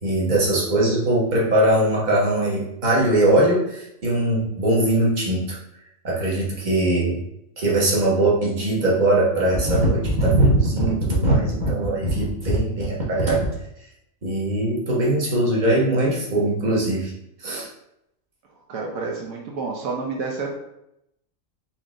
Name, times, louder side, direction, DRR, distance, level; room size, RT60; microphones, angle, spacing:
voice 1, 0.0-5.6 6.0-7.2 7.6-13.4 14.2-17.1 17.4-17.7, right 1 dB, 35° right, -4 dB, 1.1 m, -20 dB
voice 2, 18.7-20.5, right 4 dB, 80° right, -1 dB, 1.1 m, -29 dB
4.4 x 2.9 x 3.6 m, 0.82 s
omnidirectional pair, 1.4 m